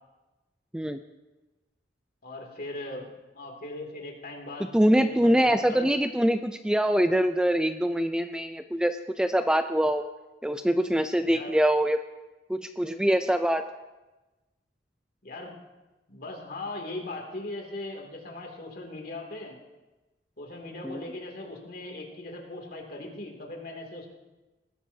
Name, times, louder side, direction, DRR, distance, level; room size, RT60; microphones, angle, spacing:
voice 1, 2.2-3.1 3.3-4.7 5.0-5.9 11.2-11.5 15.2-15.6 16.1-19.6 20.4-24.1, left 2 dB, 55° left, 1 dB, 2.6 m, -39 dB
voice 2, 4.7-10.0 10.4-12.0 12.5-13.6 20.8-21.0, equal, 5° right, 8 dB, 0.4 m, -24 dB
20.5 x 14.0 x 2.8 m, 1.1 s
head